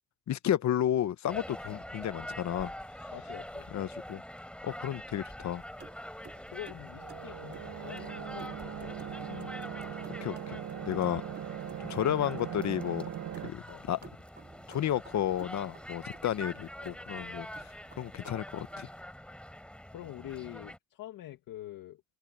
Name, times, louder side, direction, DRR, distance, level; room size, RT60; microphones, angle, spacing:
voice 1, 0.3-2.7 3.7-4.2 4.6-5.6 9.3-9.5 10.2-11.2 11.8-13.1 13.4-14.0 14.7-17.5 18.0-18.9, left 10 dB, 55° left, 1.0 m, -32 dB
sound 1, 1.3-20.8, equal, 5° left, 4.4 m, -45 dB
voice 2, 3.1-3.7 6.5-9.0 13.7-13.9 19.9-22.0, left 14 dB, 80° left, 1.9 m, -45 dB
sound 2, 5.6-19.0, right 5 dB, 35° right, 3.9 m, -56 dB
sound 3, 6.9-13.5, right 10 dB, 55° right, 2.9 m, -40 dB
cardioid pair, 115°, 33 cm